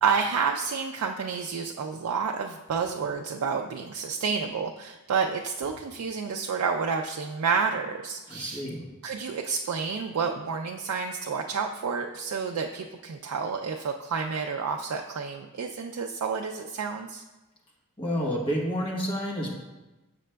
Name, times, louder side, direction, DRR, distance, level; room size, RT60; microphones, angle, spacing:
voice 1, 0.0-8.6 9.0-17.2, right 5 dB, 75° right, 2 dB, 0.3 m, -29 dB
voice 2, 8.3-8.9 18.0-19.5, equal, 25° left, -3 dB, 1.2 m, -29 dB
7.3 x 5.8 x 2.2 m, 1.1 s
head